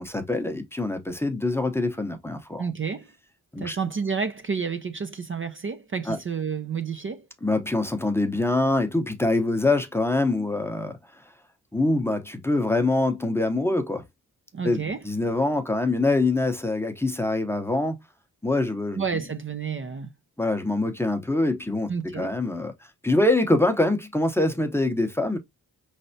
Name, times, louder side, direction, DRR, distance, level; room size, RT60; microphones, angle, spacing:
voice 1, 0.0-2.6 3.5-3.8 6.1-6.2 7.4-11.0 11.7-14.0 14.6-18.0 18.4-19.0 20.4-21.9 22.2-22.7 23.0-25.4, left 2 dB, 5° left, 0.7 m, -24 dB
voice 2, 2.6-3.1 3.6-7.2 14.5-15.0 19.0-20.1 21.9-22.3, right 6 dB, 35° right, 0.5 m, -30 dB
5.2 x 3.3 x 2.6 m
wide cardioid pair, 120°, 37 cm